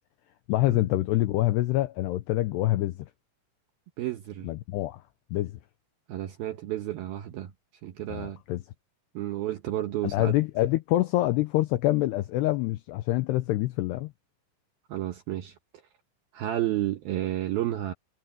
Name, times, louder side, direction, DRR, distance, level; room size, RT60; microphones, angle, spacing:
voice 1, 0.5-3.1 4.4-5.0 5.3-5.6 8.1-8.6 10.0-14.1, left 16 dB, 85° left, 2.4 m, -26 dB
voice 2, 4.0-4.5 6.1-7.5 7.8-8.4 9.1-10.3 14.9-15.5 16.3-17.9, right 14 dB, 75° right, 2.3 m, -31 dB
omnidirectional pair, 5.6 m